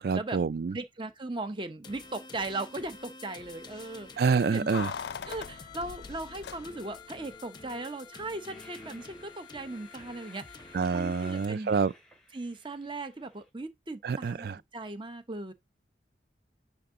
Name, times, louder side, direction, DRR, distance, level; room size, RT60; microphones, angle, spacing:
voice 1, 0.0-0.8 4.2-4.9 10.7-11.9 14.0-14.6, right 5 dB, 60° right, 0.4 m, -27 dB
voice 2, 0.7-4.2 4.5-4.7 5.3-11.7 12.3-14.5 14.7-15.5, right 2 dB, 30° right, 0.9 m, -38 dB
sound 1, 1.8-11.4, left 4 dB, 25° left, 0.8 m, -49 dB
Keys jangling, 4.7-7.1 7.3-7.4, left 6 dB, 70° left, 0.4 m, -40 dB
Train, 8.5-13.5, left 1 dB, 5° left, 2.3 m, -57 dB
10.0 x 3.7 x 3.7 m
head